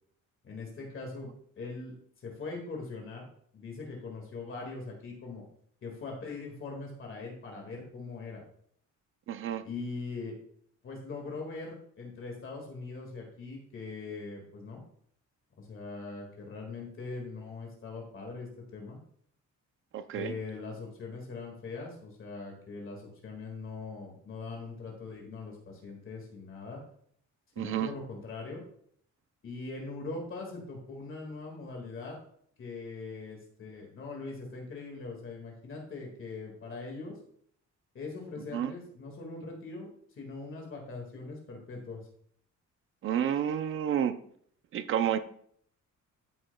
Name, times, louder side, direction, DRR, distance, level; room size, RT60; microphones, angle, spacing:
voice 1, 0.4-1.3 1.6-1.9 2.2-3.3 3.5-5.4 5.8-8.4 9.6-10.4 10.8-14.8 15.6-19.0 20.1-26.8 27.6-28.6 29.4-32.2 32.6-37.2 37.9-39.9 40.2-42.0, left 3 dB, 40° left, 0 dB, 1.9 m, -41 dB
voice 2, 9.3-9.6 19.9-20.3 27.6-27.9 38.4-38.7 43.0-44.2 44.7-45.2, right 9 dB, 40° right, 11 dB, 0.5 m, -30 dB
12.5 x 6.1 x 2.2 m, 0.63 s
cardioid pair, 170°, 31 cm